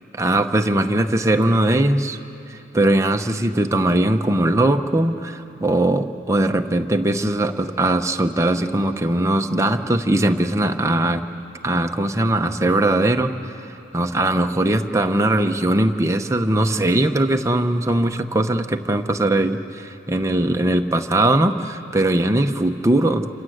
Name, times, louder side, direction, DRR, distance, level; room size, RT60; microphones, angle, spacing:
voice 1, 0.1-2.2 2.7-11.2 11.6-13.3 13.9-23.3, right 1 dB, 15° right, 5 dB, 0.9 m, -20 dB
27.5 x 26.0 x 8.0 m, 3.0 s
head